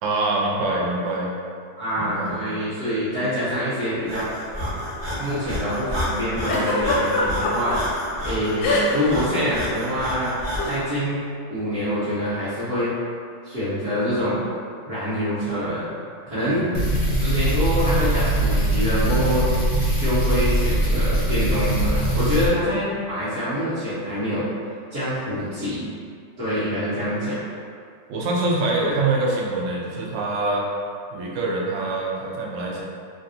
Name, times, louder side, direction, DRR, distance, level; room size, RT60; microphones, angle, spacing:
voice 1, 0.0-1.3 2.0-2.4 16.4-16.7 28.1-30.7 31.1-32.8, right 2 dB, 80° right, -3 dB, 1.2 m, -25 dB
voice 2, 1.8-4.3 5.2-7.9 8.2-10.3 10.6-11.2 11.5-12.9 13.4-14.4 14.9-15.8 16.3-16.7 17.0-19.4 20.0-24.5 24.9-25.9 26.4-27.4, equal, 50° right, -15 dB, 1.2 m, -25 dB
Breathing, 4.0-10.8, equal, 25° right, 0.6 m, -30 dB
Giggle, 6.5-7.8 8.6-9.1 9.4-9.6 10.5-10.8, left 2 dB, 85° left, 1.3 m, -23 dB
sound 1, 16.7-22.5, right 1 dB, 55° left, 0.7 m, -21 dB
3.3 x 2.4 x 2.6 m, 2.3 s
omnidirectional pair, 1.9 m